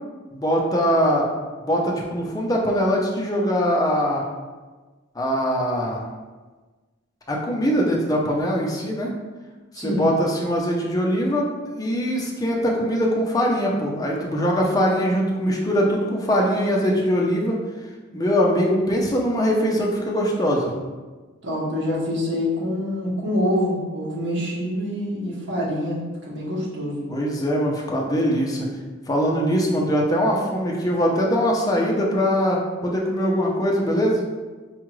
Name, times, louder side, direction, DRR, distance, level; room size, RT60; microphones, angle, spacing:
voice 1, 0.3-1.3 1.7-4.2 5.2-6.1 7.3-9.1 9.7-11.5 11.7-17.6 18.1-20.7 27.1-28.7 29.1-34.3, equal, 20° left, -2 dB, 0.5 m, -22 dB
voice 2, 9.8-10.1 21.4-26.0 26.3-27.0, left 1 dB, 65° right, -6 dB, 1.1 m, -25 dB
4.6 x 2.4 x 3.1 m, 1.3 s
head